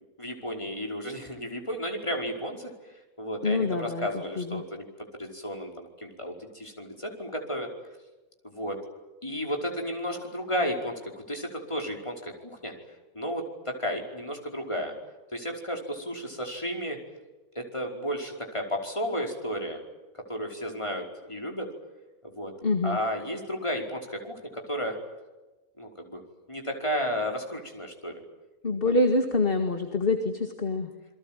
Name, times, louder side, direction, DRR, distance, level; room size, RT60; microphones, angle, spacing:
voice 1, 0.2-2.7 3.2-4.9 5.2-7.7 8.4-8.8 9.2-12.7 13.1-14.9 15.3-17.0 17.6-19.8 20.3-21.7 22.2-22.5 22.8-25.0 25.8-26.2 26.5-28.2 28.8-28.9, equal, 20° left, 2 dB, 5.2 m, -33 dB
voice 2, 3.4-4.1 4.4-4.6 22.6-23.0 28.6-30.9, left 2 dB, 35° left, 5 dB, 2.3 m, -25 dB
29.0 x 22.0 x 9.2 m, 1.1 s
omnidirectional pair, 1.6 m